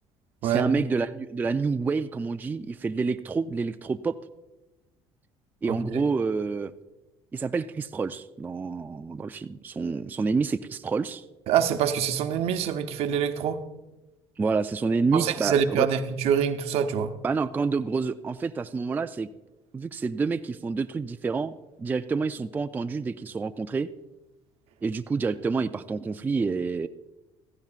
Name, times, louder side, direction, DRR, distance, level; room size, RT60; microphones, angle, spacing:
voice 1, 0.4-4.2 5.6-6.7 7.3-11.2 14.4-15.9 17.2-19.3 19.7-23.9 24.8-26.9, right 4 dB, 15° right, 8 dB, 0.3 m, -28 dB
voice 2, 5.7-6.0 11.5-13.6 15.1-17.1, right 8 dB, 70° right, 8 dB, 0.8 m, -25 dB
16.0 x 14.5 x 2.4 m, 1.0 s
cardioid pair, 115°, 11 cm